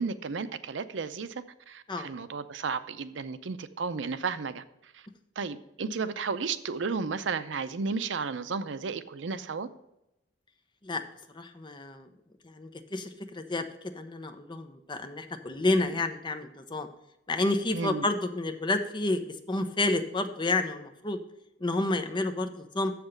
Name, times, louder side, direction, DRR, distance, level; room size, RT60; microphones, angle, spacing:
voice 1, 0.0-5.0 5.4-9.7 17.7-18.1, right 5 dB, 80° right, 13 dB, 0.5 m, -33 dB
voice 2, 11.3-12.1 12.4-13.7 13.9-16.9 17.3-21.2 21.6-22.9, left 2 dB, 25° left, 7 dB, 0.8 m, -30 dB
7.1 x 5.9 x 6.5 m, 0.87 s
head